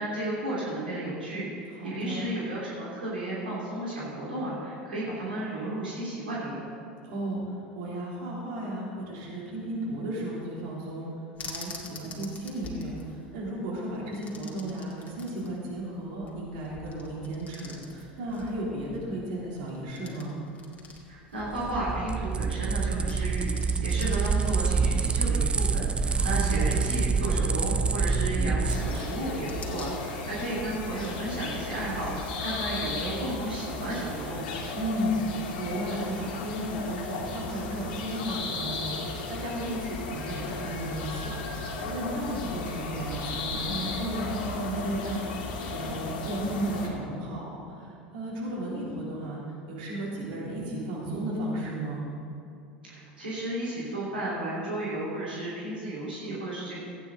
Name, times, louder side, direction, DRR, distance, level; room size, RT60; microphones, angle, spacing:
voice 1, 0.0-6.6 21.1-34.4 52.9-56.8, right 1 dB, 85° right, -7 dB, 2.8 m, -33 dB
voice 2, 1.7-2.3 7.0-11.1 11.4-20.4 26.1-26.7 34.7-49.4 49.7-52.1, right 1 dB, 65° right, -5 dB, 3.2 m, -34 dB
sound 1, 11.3-31.1, left 3 dB, 30° left, 2.1 m, -47 dB
sound 2, 21.4-29.1, right 5 dB, 20° right, 0.5 m, -26 dB
sound 3, 28.7-46.9, left 3 dB, 70° left, 2.2 m, -35 dB
14.5 x 9.4 x 3.9 m, 2.6 s
hypercardioid pair, 80°, 5 cm